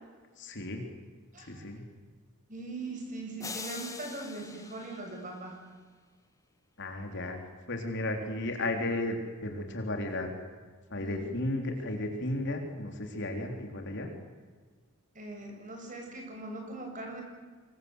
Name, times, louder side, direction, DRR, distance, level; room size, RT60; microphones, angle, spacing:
voice 1, 0.4-0.8 1.4-1.8 6.8-7.4 7.7-10.3 10.9-14.1, left 1 dB, 55° left, 4 dB, 4.0 m, -34 dB
voice 2, 1.3-1.8 2.5-5.6 10.9-11.2 15.1-17.2, right 2 dB, 35° right, 2 dB, 7.1 m, -41 dB
sound 1, 3.4-5.7, left 4 dB, 15° left, 1.5 m, -43 dB
26.5 x 23.0 x 8.2 m, 1.5 s
head